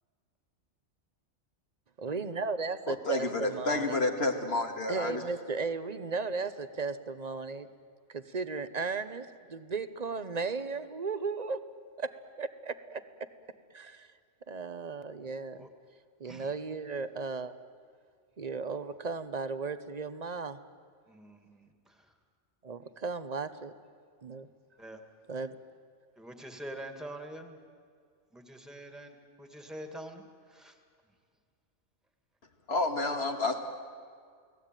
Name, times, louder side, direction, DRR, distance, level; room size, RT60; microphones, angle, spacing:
voice 1, 2.0-4.0 4.9-7.7 8.1-11.7 12.0-13.3 13.7-14.1 14.5-15.7 16.2-17.5 18.4-20.6 22.6-23.7 24.2-24.5 25.3-25.6, right 4 dB, 40° right, 12 dB, 1.0 m, -35 dB
voice 2, 2.9-5.2 32.7-33.6, left 2 dB, 60° left, 5 dB, 2.3 m, -30 dB
voice 3, 21.1-22.0 24.8-25.0 26.2-27.6 28.3-30.2 30.5-30.8 33.3-33.6, right 1 dB, ahead, 5 dB, 2.0 m, -45 dB
29.5 x 18.5 x 9.1 m, 2.1 s
omnidirectional pair, 1.2 m